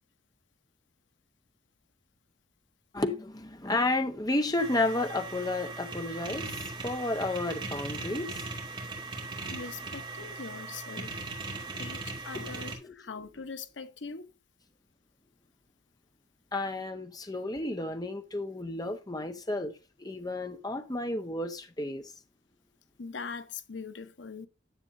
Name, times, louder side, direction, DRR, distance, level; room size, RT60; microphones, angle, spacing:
voice 1, 2.9-9.5 11.6-11.8 12.3-12.9 16.5-19.7 20.0-22.1, left 2 dB, 20° left, 0.9 m, -32 dB
sound 1, 4.6-12.8, right 3 dB, 25° right, 2.3 m, -39 dB
voice 2, 9.5-11.2 11.8-14.3 23.0-24.5, left 5 dB, 90° left, 0.9 m, -42 dB
10.0 x 7.1 x 2.6 m
head